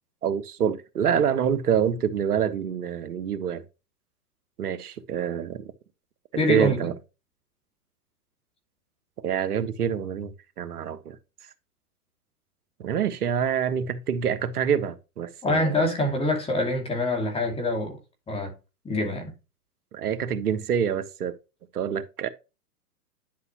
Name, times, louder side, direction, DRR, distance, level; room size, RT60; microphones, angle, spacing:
voice 1, 0.2-3.6 4.6-5.6 6.5-6.9 9.2-11.2 12.8-15.8 19.9-21.3 21.7-22.3, right 8 dB, 75° right, 1.4 m, -26 dB
voice 2, 6.4-6.9 15.4-18.0 18.3-18.5 18.8-19.3, left 1 dB, 10° left, 2.6 m, -25 dB
11.0 x 5.6 x 2.9 m
hypercardioid pair, 130°, 46 cm